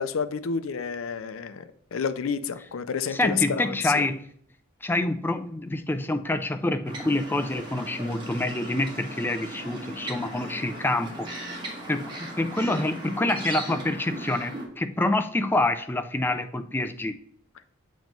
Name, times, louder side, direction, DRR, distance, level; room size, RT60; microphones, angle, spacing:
voice 1, 0.0-1.6 1.9-4.0, left 6 dB, 70° left, 12 dB, 0.5 m, -29 dB
voice 2, 3.1-4.3 4.8-11.3 11.9-17.1, left 2 dB, 10° left, 8 dB, 0.3 m, -27 dB
sound 1, 6.8-14.6, right 1 dB, 20° right, 1.3 m, -37 dB
7.2 x 3.0 x 5.2 m, 0.66 s
head